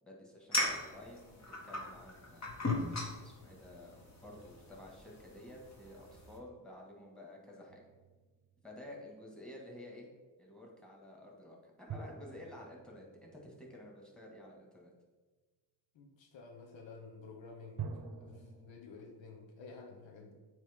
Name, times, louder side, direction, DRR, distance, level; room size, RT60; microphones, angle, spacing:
voice 1, 0.0-2.6 3.2-7.8 8.6-10.1 10.4-14.9, left 1 dB, ahead, -1 dB, 1.8 m, -52 dB
sound 1, 0.5-6.4, left 2 dB, 35° left, 1.6 m, -39 dB
sound 2, 7.7-9.0 11.9-14.5 17.8-18.7, right 5 dB, 60° right, 0.8 m, -47 dB
voice 2, 15.9-17.9 18.2-20.3, left 4 dB, 85° left, 3 dB, 1.0 m, -52 dB
8.4 x 3.3 x 3.6 m, 1.3 s
cardioid pair, 70°, 44 cm